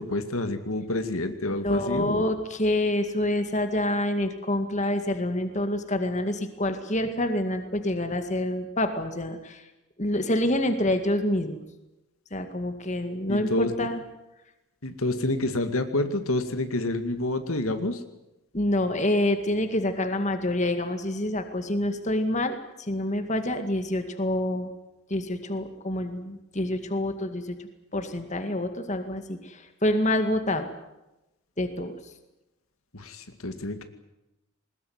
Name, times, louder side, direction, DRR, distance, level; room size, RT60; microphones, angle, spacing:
voice 1, 0.0-2.3 13.3-13.9 14.8-18.0 32.9-33.8, left 2 dB, 80° left, 7 dB, 2.2 m, -28 dB
voice 2, 1.6-9.6 10.0-11.6 12.3-14.0 18.5-22.6 22.9-24.7 25.1-27.6 27.9-30.7 31.6-31.9, left 1 dB, 35° left, 7 dB, 2.1 m, -27 dB
21.0 x 20.5 x 9.5 m, 0.95 s
head